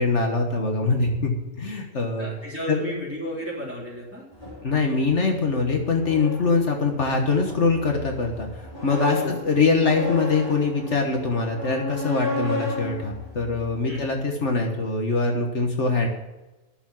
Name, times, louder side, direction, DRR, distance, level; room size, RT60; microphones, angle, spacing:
voice 1, 0.0-2.3 2.7-2.8 4.6-16.1, left 3 dB, 60° left, 2 dB, 1.7 m, -23 dB
voice 2, 1.9-4.3 9.1-9.4 13.9-14.1, equal, 10° right, -5 dB, 3.7 m, -33 dB
sound 1, 4.3-14.3, left 2 dB, 35° left, 4.1 m, -34 dB
11.0 x 7.1 x 7.7 m, 1.1 s
omnidirectional pair, 1.4 m